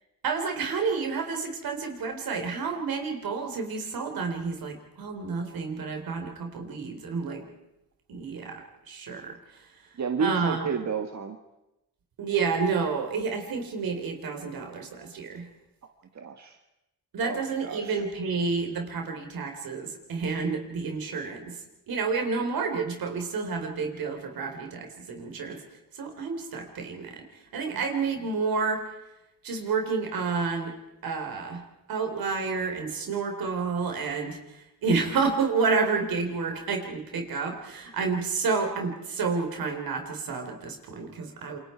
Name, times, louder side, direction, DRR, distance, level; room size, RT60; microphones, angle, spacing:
voice 1, 0.2-7.5 8.1-9.6 10.2-10.7 12.2-15.5 17.1-25.6 25.9-27.3 27.5-28.8 29.4-30.8 31.0-31.6 31.9-41.6, right 4 dB, 75° right, 4 dB, 4.2 m, -30 dB
voice 2, 10.0-11.4 16.2-16.6 17.2-18.0 27.7-27.8, right 5 dB, 50° right, 5 dB, 1.7 m, -31 dB
28.0 x 22.5 x 4.6 m, 0.92 s
cardioid pair, 65°, 35 cm